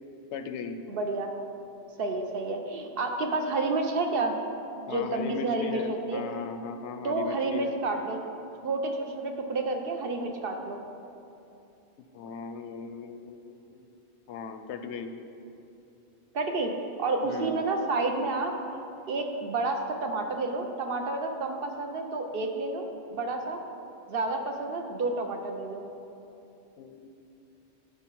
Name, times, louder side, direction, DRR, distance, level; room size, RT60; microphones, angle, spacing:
voice 1, 0.3-0.8 4.9-7.7 12.1-13.9 14.3-15.1 17.2-17.6 26.8-27.1, left 6 dB, 85° left, 8 dB, 0.9 m, -37 dB
voice 2, 0.9-1.3 2.0-4.4 4.9-6.2 7.0-8.2 8.6-10.8 16.3-16.7 17.0-18.5 19.1-22.8 23.1-23.6 24.1-25.8, right 3 dB, 60° right, 4 dB, 0.9 m, -30 dB
10.0 x 4.9 x 4.6 m, 2.8 s
omnidirectional pair, 1.1 m